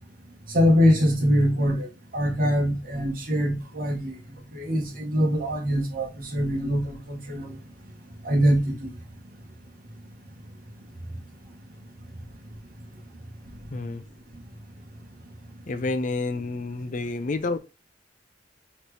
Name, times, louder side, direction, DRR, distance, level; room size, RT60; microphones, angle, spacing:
voice 1, 0.5-4.2 4.5-7.6 8.2-8.9, equal, 50° right, 1.3 m, -23 dB
voice 2, 13.7-14.0 15.7-17.6, left 3 dB, 45° left, 0.4 m, -29 dB
4.2 x 3.1 x 3.2 m
head